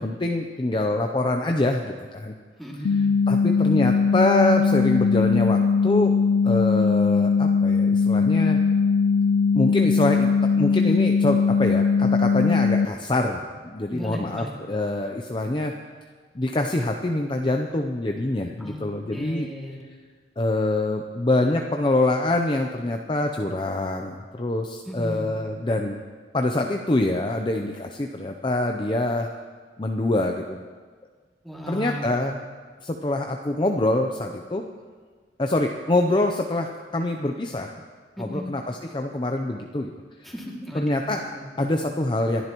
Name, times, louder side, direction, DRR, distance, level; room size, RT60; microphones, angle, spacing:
voice 1, 0.0-2.3 3.3-6.1 6.4-8.6 9.5-15.7 16.3-19.5 20.4-26.0 26.3-29.3 29.8-30.6 31.7-32.4 32.8-34.6 35.4-37.7 38.2-39.9 40.2-40.3 40.7-41.3 41.6-42.5, left 2 dB, 25° left, 3 dB, 0.6 m, -25 dB
voice 2, 2.6-3.1 13.9-14.5 18.6-18.8 19.1-19.8 24.9-25.3 31.4-32.3 38.2-38.5 40.2-41.4, equal, ahead, -4 dB, 2.4 m, -35 dB
sound 1, 2.8-12.9, left 5 dB, 90° left, 0.4 m, -20 dB
26.5 x 11.0 x 3.0 m, 1.5 s
head